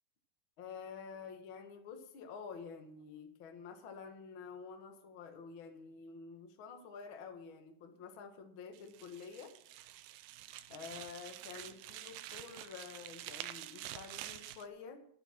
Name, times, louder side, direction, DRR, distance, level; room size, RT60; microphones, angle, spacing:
voice 1, 0.6-9.5 10.7-15.0, left 5 dB, 75° left, 5 dB, 1.1 m, -49 dB
sound 1, 8.7-14.7, right 14 dB, 80° right, 2.4 m, -48 dB
12.0 x 9.1 x 6.0 m, 0.68 s
omnidirectional pair, 4.7 m